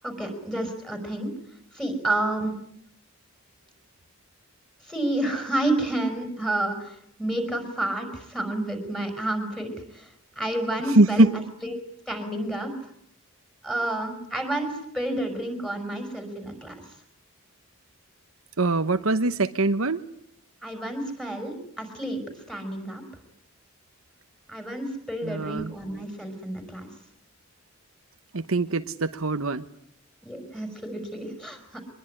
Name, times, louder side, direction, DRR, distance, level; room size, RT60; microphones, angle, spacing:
voice 1, 0.0-1.3 1.7-2.5 4.8-11.2 11.6-11.7 12.1-12.7 13.6-16.7 20.6-22.2 22.5-23.0 24.5-26.9 30.2-31.8, right 1 dB, 5° left, 6 dB, 5.6 m, -30 dB
voice 2, 10.9-11.3 18.6-20.0 25.2-25.7 28.3-29.6, right 2 dB, 75° right, 10 dB, 1.1 m, -22 dB
24.5 x 21.5 x 9.9 m, 0.69 s
head